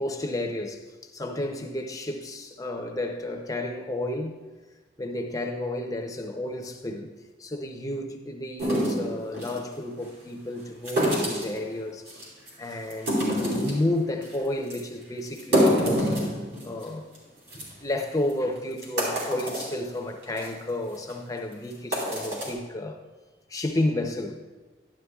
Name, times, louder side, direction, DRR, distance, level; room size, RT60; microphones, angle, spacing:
voice 1, 0.0-4.4 5.0-7.1 7.4-12.2 12.6-16.2 16.6-17.0 17.8-23.0 23.5-24.4, left 1 dB, 20° left, 0.5 m, -31 dB
sound 1, 8.6-9.6 10.8-11.6 12.1-12.5 12.9-13.8 14.2-14.3 14.7-14.8 15.3-16.8 17.1-17.2 17.5-17.6 18.3-18.4 18.8-19.7 20.2-20.5 20.9-21.1 21.7-22.5, equal, 65° right, 3.5 m, -26 dB
11.5 x 11.0 x 2.3 m
head